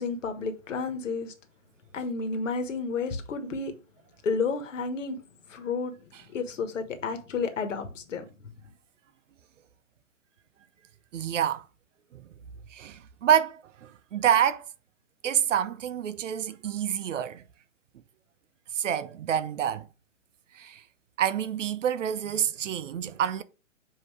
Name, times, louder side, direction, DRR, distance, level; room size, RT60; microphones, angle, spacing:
voice 1, 0.0-1.3 1.9-3.7 4.2-5.2 5.5-5.9 6.3-8.2, left 4 dB, 70° left, 1.4 m, -31 dB
voice 2, 11.1-11.6 12.1-12.3 12.7-14.7 15.2-17.4 18.7-19.9 20.5-20.8 21.2-23.4, right 9 dB, 70° right, 0.7 m, -27 dB
7.5 x 2.9 x 4.6 m
hypercardioid pair, 160°, 39 cm